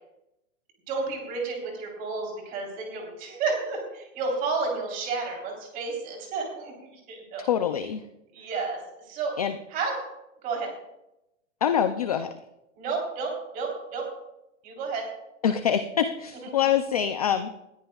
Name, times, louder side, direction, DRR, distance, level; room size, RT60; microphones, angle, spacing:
voice 1, 0.9-6.7 7.1-7.5 8.3-8.8 9.1-9.3 9.7-10.0 10.4-10.7 12.8-14.1 14.6-15.1, right 4 dB, 20° right, 0 dB, 3.6 m, -31 dB
voice 2, 7.4-8.0 9.4-9.6 11.6-12.3 15.4-17.5, left 9 dB, 30° left, 8 dB, 0.4 m, -25 dB
20.0 x 13.5 x 2.3 m, 0.88 s
supercardioid pair, 175°, 39 cm